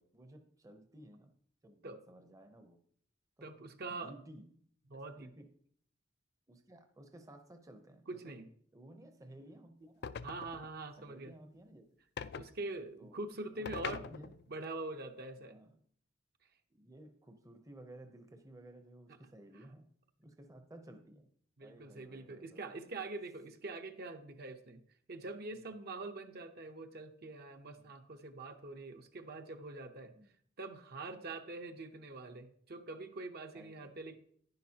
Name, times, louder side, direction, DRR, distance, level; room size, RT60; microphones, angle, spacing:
voice 1, 0.0-1.3 1.6-2.8 3.4-3.5 3.9-4.5 4.9-5.5 6.5-8.4 8.7-10.1 11.0-11.8 13.0-13.2 13.5-14.4 15.4-15.7 16.7-19.9 20.2-21.3 21.6-22.9 25.5-25.9 27.8-27.9 30.1-30.3 31.1-31.4 33.5-34.0, right 1 dB, 15° right, 6 dB, 0.7 m, -56 dB
voice 2, 3.4-4.1 4.9-5.3 8.1-8.5 10.2-11.3 12.4-15.6 19.5-19.7 21.6-24.8 25.1-30.1 30.6-34.2, right 2 dB, 55° right, 6 dB, 0.8 m, -44 dB
sound 1, 10.0-10.7 12.2-12.5 13.7-14.5, left 6 dB, 55° left, 0.4 m, -42 dB
10.5 x 10.0 x 2.8 m, 0.62 s
head